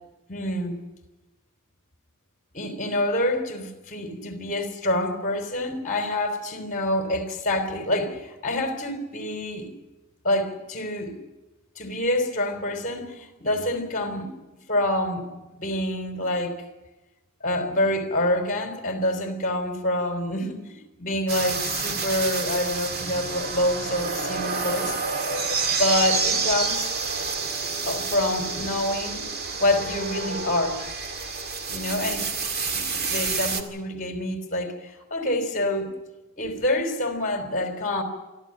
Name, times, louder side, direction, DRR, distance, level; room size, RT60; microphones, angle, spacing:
voice 1, 0.3-0.8 2.5-9.7 10.2-11.1 11.8-14.3 14.7-16.6 17.4-25.0 25.7-26.9 27.9-29.3 29.6-30.8 31.7-32.3 32.7-35.9 36.4-38.0, left 1 dB, 40° left, 3.4 m, -27 dB
sound 1, 21.3-33.6, right 4 dB, 50° right, 2.2 m, -28 dB
23.5 x 14.5 x 8.7 m
head